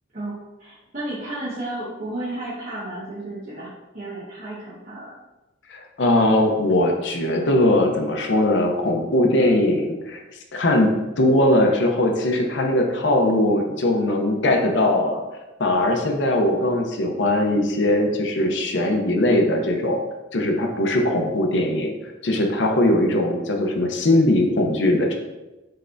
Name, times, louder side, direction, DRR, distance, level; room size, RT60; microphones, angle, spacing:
voice 1, 0.6-5.1, right 1 dB, 50° right, -10 dB, 1.3 m, -33 dB
voice 2, 5.7-10.2 10.5-15.2 15.6-20.0 20.3-21.9 22.2-25.1, left 1 dB, 75° left, 2 dB, 0.7 m, -20 dB
5.6 x 3.3 x 2.6 m, 1.1 s
head